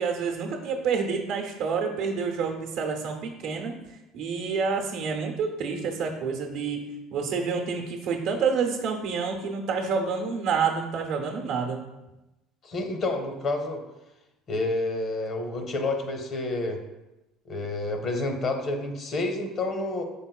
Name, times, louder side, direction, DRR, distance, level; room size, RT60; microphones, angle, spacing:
voice 1, 0.0-3.7 4.1-6.8 7.1-11.8, right 5 dB, 70° right, 2 dB, 0.7 m, -28 dB
voice 2, 12.6-13.8 14.5-16.8 17.5-20.0, left 2 dB, 45° left, 4 dB, 0.7 m, -29 dB
5.3 x 3.6 x 2.3 m, 0.99 s
hypercardioid pair, 70°, 0 cm